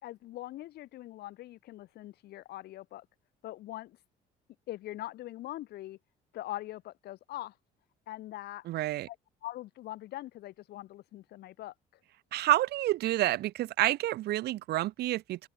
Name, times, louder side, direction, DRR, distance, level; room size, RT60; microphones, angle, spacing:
voice 1, 0.0-3.1 3.4-4.0 4.7-6.0 6.3-7.5 8.1-8.7 9.1-9.2 9.4-11.7, left 15 dB, 70° left, 1.6 m, -42 dB
voice 2, 8.7-9.1 12.3-15.5, right 15 dB, 75° right, 1.6 m, -29 dB
open air
cardioid pair, 110°, 17 cm